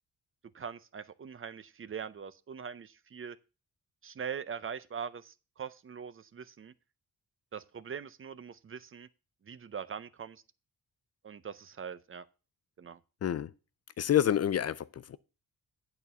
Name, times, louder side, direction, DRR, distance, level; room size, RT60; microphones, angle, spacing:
voice 1, 0.5-3.4 4.0-6.7 7.5-9.1 9.4-10.4 11.2-12.3 12.8-13.0, right 7 dB, 35° right, 0.6 m, -42 dB
voice 2, 14.0-15.2, left 10 dB, 45° left, 0.4 m, -28 dB
8.8 x 4.4 x 6.8 m
cardioid pair, 115°, 36 cm